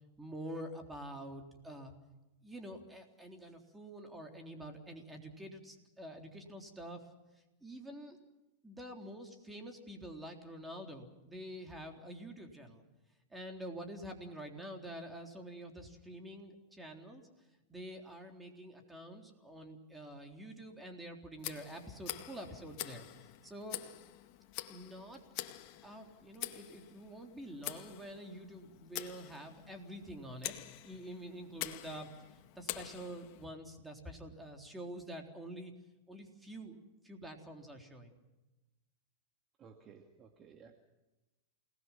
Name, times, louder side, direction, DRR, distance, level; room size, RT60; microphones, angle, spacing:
voice 1, 0.2-1.9 2.4-7.0 7.6-8.2 8.6-12.8 13.3-23.8 24.7-25.2 25.8-30.5 30.8-32.1 32.6-35.7 36.1-36.8 37.0-38.2, right 1 dB, 5° right, 3 dB, 3.7 m, -47 dB
Tick, 21.4-33.5, left 15 dB, 50° left, 2.0 m, -46 dB
voice 2, 39.6-40.8, right 6 dB, 30° right, 5 dB, 2.1 m, -57 dB
29.0 x 19.5 x 5.9 m, 1.0 s
supercardioid pair, 135°, 0 cm